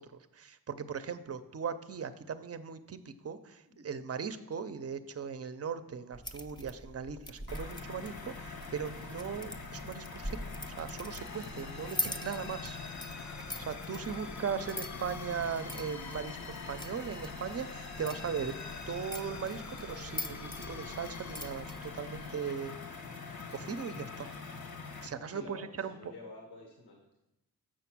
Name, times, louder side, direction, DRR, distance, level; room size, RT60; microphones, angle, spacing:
voice 1, 0.0-10.4 10.8-12.8 13.6-18.5 18.9-22.8 23.5-24.3 25.0-25.9, right 6 dB, 40° right, 12 dB, 0.6 m, -38 dB
sound 1, 6.1-22.3, left 1 dB, 10° left, 0.5 m, -44 dB
sound 2, 7.5-25.1, left 4 dB, 70° left, 1.2 m, -44 dB
sound 3, 11.2-21.5, left 5 dB, 50° left, 0.7 m, -48 dB
voice 2, 12.1-12.5 14.1-14.6 25.3-27.2, left 2 dB, 90° left, 1 dB, 1.4 m, -51 dB
6.9 x 6.3 x 6.0 m, 0.90 s
wide cardioid pair, 95°, 37 cm